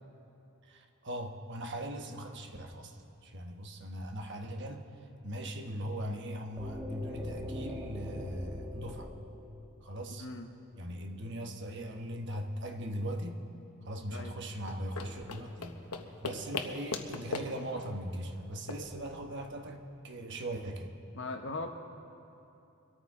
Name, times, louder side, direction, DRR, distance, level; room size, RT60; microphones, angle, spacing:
voice 1, 0.6-4.8 5.2-9.1 9.8-10.3 10.8-13.4 13.8-15.8 16.2-20.9, equal, 55° right, 4 dB, 1.1 m, -39 dB
sound 1, 6.6-10.5, equal, 10° right, 1.3 m, -42 dB
voice 2, 10.1-10.5 14.1-14.3 21.1-21.8, left 2 dB, 55° left, 5 dB, 0.8 m, -39 dB
sound 2, 14.5-19.8, left 4 dB, 90° left, 1.0 m, -41 dB
23.5 x 13.5 x 3.7 m, 2.8 s
head